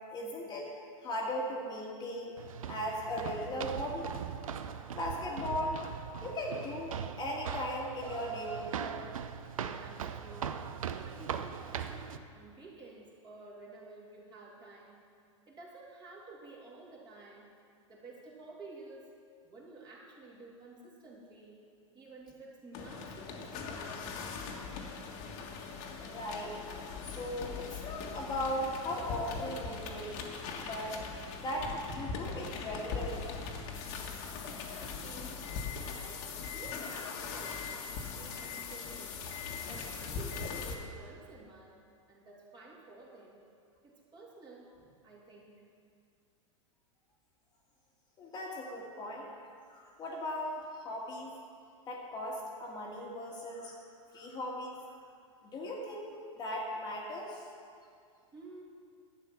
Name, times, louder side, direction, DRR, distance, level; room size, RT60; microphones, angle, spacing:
voice 1, 0.1-0.7 1.0-2.4 2.7-4.0 4.9-5.8 6.2-8.9 24.4-24.6 26.0-26.5 27.0-30.2 30.6-31.0 31.4-33.3 33.5-33.8 34.2-34.3 48.2-49.4 49.7-51.3 51.9-53.8 54.1-54.8 55.4-57.4, left 1 dB, 25° left, -2 dB, 1.7 m, -38 dB
sound 1, 2.4-12.2, right 7 dB, 85° right, 0.6 m, -40 dB
voice 2, 9.7-10.6 11.0-15.0 15.5-17.5 17.9-19.1 19.4-21.6 21.9-24.1 34.5-35.4 35.8-39.2 39.7-43.5 43.8-44.7 45.0-45.6 58.3-58.6, right 3 dB, 25° right, -3 dB, 2.8 m, -52 dB
sound 2, 22.7-40.8, left 5 dB, 45° left, 1.6 m, -40 dB
11.5 x 8.8 x 5.9 m, 2.3 s
hypercardioid pair, 125°, 17 cm